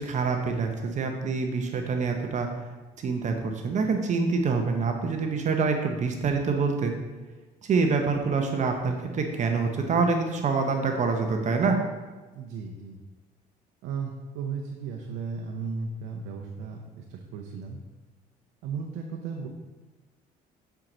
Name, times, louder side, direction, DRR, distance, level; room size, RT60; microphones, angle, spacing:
voice 1, 0.0-2.5 3.0-7.0 7.6-11.8, right 4 dB, 45° right, 4 dB, 0.7 m, -26 dB
voice 2, 12.3-13.0 13.8-17.8 18.6-19.5, right 5 dB, 90° right, 2 dB, 0.7 m, -35 dB
7.6 x 4.6 x 3.8 m, 1.2 s
cardioid pair, 110°, 17 cm